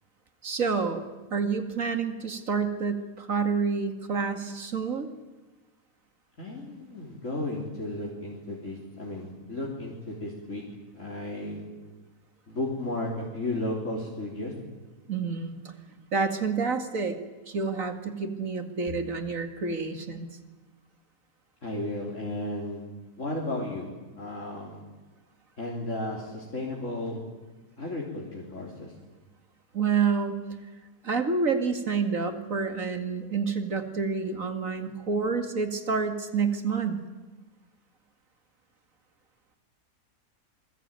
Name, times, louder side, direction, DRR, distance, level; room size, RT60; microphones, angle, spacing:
voice 1, 0.4-1.1 1.3-5.1 15.1-15.6 16.1-17.2 17.5-20.3 29.7-30.4 31.0-37.0, right 5 dB, 55° right, 7 dB, 2.6 m, -28 dB
voice 2, 6.4-10.6 10.9-11.6 12.5-14.5 21.6-22.8 23.2-23.9 24.2-24.8 25.6-27.2 27.8-28.9, left 2 dB, 50° left, -3 dB, 4.2 m, -34 dB
27.0 x 20.5 x 9.1 m, 1.2 s
omnidirectional pair, 1.7 m